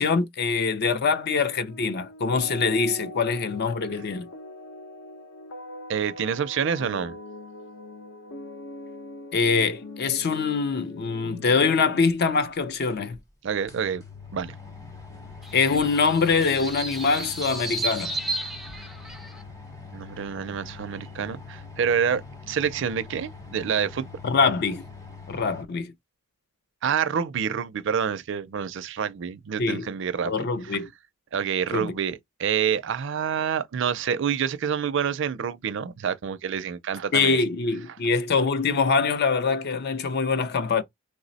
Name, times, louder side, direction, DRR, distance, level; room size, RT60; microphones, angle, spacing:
voice 1, 0.0-4.3 9.3-13.2 15.5-18.1 24.2-24.8 25.3-25.9 29.6-29.9 30.2-30.9 31.7-31.9 37.1-40.8, left 4 dB, 50° left, 0.5 m, -24 dB
sound 1, 1.2-12.0, left 2 dB, 80° left, 0.8 m, -42 dB
voice 2, 5.9-7.2 13.4-14.0 14.3-14.5 19.9-22.2 22.5-24.1 26.8-30.3 30.7-30.8 31.3-37.4, right 7 dB, 60° right, 0.4 m, -27 dB
sound 2, 12.5-12.6 13.1-13.2 13.5-25.6, left 4 dB, 15° left, 0.8 m, -43 dB
sound 3, 15.4-19.4, right 2 dB, ahead, 0.4 m, -33 dB
3.1 x 2.0 x 4.0 m
head